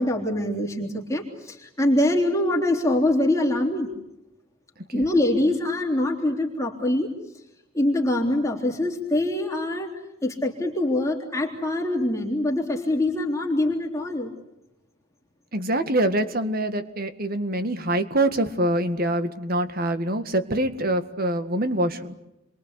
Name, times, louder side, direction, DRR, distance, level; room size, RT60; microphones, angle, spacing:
voice 1, 0.0-3.9 4.9-7.1 7.7-9.9 10.2-14.3, left 1 dB, 15° left, -1 dB, 3.6 m, -24 dB
voice 2, 15.5-22.1, right 1 dB, 50° right, 10 dB, 1.9 m, -25 dB
30.0 x 23.5 x 8.4 m, 0.90 s
head